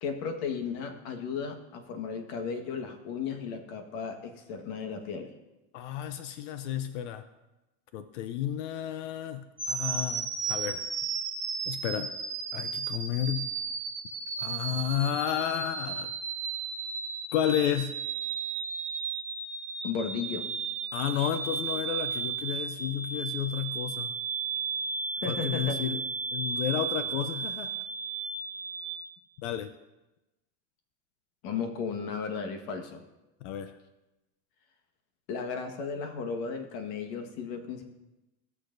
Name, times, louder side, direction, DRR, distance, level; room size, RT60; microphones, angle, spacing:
voice 1, 0.0-5.3 19.8-20.5 25.2-25.8 31.4-33.0 35.3-37.8, left 5 dB, 70° left, 6 dB, 1.5 m, -35 dB
voice 2, 5.7-7.2 7.9-10.8 11.7-12.1 12.5-13.5 14.4-16.1 17.3-17.9 20.9-24.1 25.2-26.0 26.3-27.7 29.4-29.7 33.4-33.7, left 10 dB, 85° left, 10 dB, 0.7 m, -32 dB
sound 1, 9.6-29.0, right 5 dB, 20° right, 1.2 m, -34 dB
17.0 x 6.6 x 2.6 m, 1.0 s
supercardioid pair, 120°, 35 cm